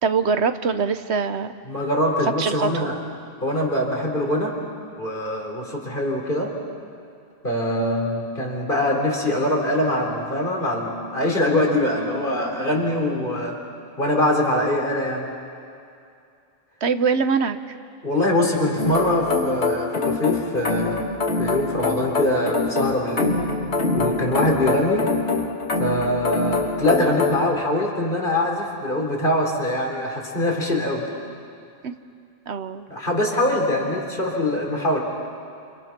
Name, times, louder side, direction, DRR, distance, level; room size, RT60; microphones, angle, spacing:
voice 1, 0.0-1.5 2.4-2.9 16.8-17.7 31.8-31.9 32.5-32.8, right 5 dB, 80° right, 10 dB, 1.2 m, -23 dB
voice 2, 1.7-3.0 3.4-4.6 5.0-6.6 7.4-13.6 14.0-15.3 18.0-21.1 21.4-23.4 23.9-25.1 25.8-31.1 32.9-35.0, left 1 dB, 50° left, 0 dB, 4.2 m, -23 dB
sound 1, 18.8-27.5, left 3 dB, 85° left, 2.2 m, -24 dB
28.5 x 27.5 x 6.0 m, 2.4 s
omnidirectional pair, 1.1 m